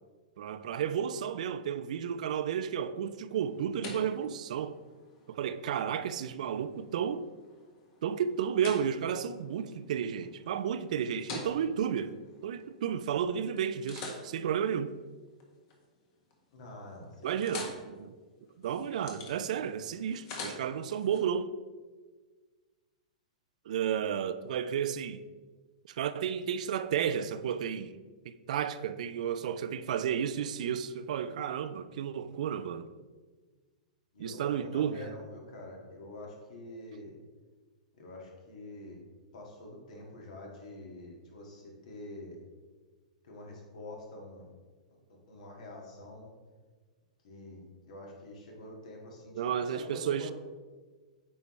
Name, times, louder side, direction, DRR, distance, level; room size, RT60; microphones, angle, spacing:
voice 1, 0.4-4.8 5.3-7.3 8.0-12.1 12.4-14.9 17.2-18.1 18.6-21.5 23.7-25.2 25.9-28.0 28.3-32.9 34.2-35.1 49.4-50.3, right 8 dB, 70° right, 0.4 m, -32 dB
sound 1, 3.1-13.1 13.6-15.8 16.2-16.6 16.9-21.2, left 3 dB, 45° left, 1.4 m, -47 dB
voice 2, 16.5-17.6 34.1-37.1 38.0-39.0 39.3-42.4 43.2-44.5 45.3-46.3 47.2-50.3, left 1 dB, 70° left, 2.1 m, -46 dB
8.4 x 4.6 x 3.2 m
hypercardioid pair, 135°, 4 cm